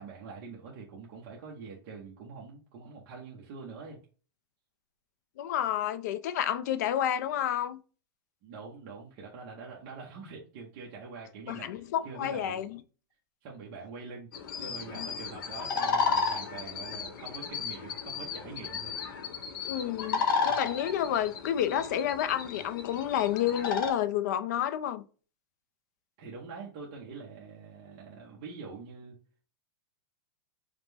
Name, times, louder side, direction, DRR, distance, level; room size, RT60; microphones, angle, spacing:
voice 1, 0.0-4.0 8.4-12.6 13.4-14.3 14.6-18.9 20.4-20.6 26.2-29.2, right 4 dB, 30° right, 0.7 m, -45 dB
voice 2, 5.4-7.8 11.5-12.8 14.6-15.1 19.7-25.0, left 10 dB, 45° left, 0.3 m, -30 dB
sound 1, 14.3-23.9, left 5 dB, 60° left, 0.8 m, -33 dB
5.0 x 2.1 x 3.3 m
supercardioid pair, 180°, 13 cm